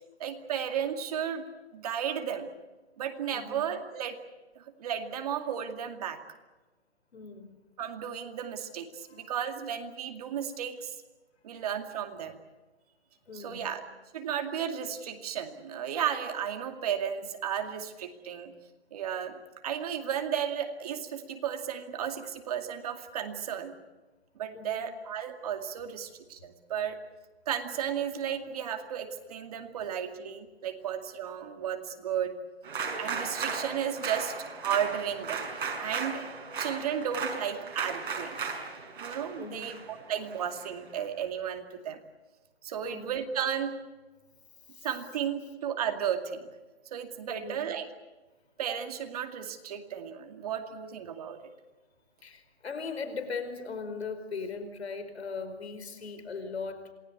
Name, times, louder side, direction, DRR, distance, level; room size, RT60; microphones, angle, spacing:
voice 1, 0.2-1.4 1.7-2.5 3.0-4.2 4.6-6.2 7.8-11.0 11.4-12.4 13.3-13.8 14.1-18.5 18.9-19.4 19.6-23.7 24.4-27.0 27.5-32.3 33.0-34.3 34.6-35.5 35.8-36.2 36.6-38.4 39.0-42.0 42.6-43.7 44.8-46.5 46.9-47.8 48.6-51.4, right 8 dB, 35° right, 5 dB, 2.4 m, -34 dB
voice 2, 3.3-3.6 7.1-7.6 13.3-13.7 24.5-24.8 39.4-39.7 42.8-43.1 44.7-44.9 47.3-47.6 52.2-56.9, left 4 dB, 75° left, 10 dB, 4.9 m, -39 dB
sound 1, 32.6-41.0, right 5 dB, 50° right, 6.0 m, -36 dB
27.0 x 19.5 x 8.4 m, 1.2 s
hypercardioid pair, 165°, 32 cm